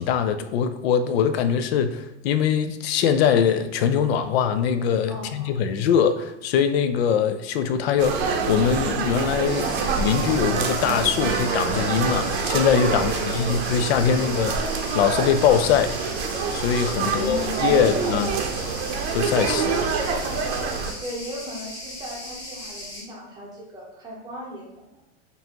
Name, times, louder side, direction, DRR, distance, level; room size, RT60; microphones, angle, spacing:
voice 1, 0.0-8.1 8.5-9.6 10.0-14.5 14.9-15.9 16.5-18.3 19.1-19.9, left 7 dB, 65° left, 9 dB, 0.5 m, -22 dB
voice 2, 5.1-5.6 9.6-9.8 10.1-10.5 12.9-13.5 16.9-18.4 21.0-25.0, equal, 10° right, -3 dB, 0.7 m, -35 dB
sound 1, 8.0-20.9, right 5 dB, 60° right, 0.7 m, -26 dB
sound 2, 9.4-23.0, left 1 dB, 10° left, 1.2 m, -38 dB
5.4 x 2.6 x 2.9 m, 0.90 s
supercardioid pair, 160°, 34 cm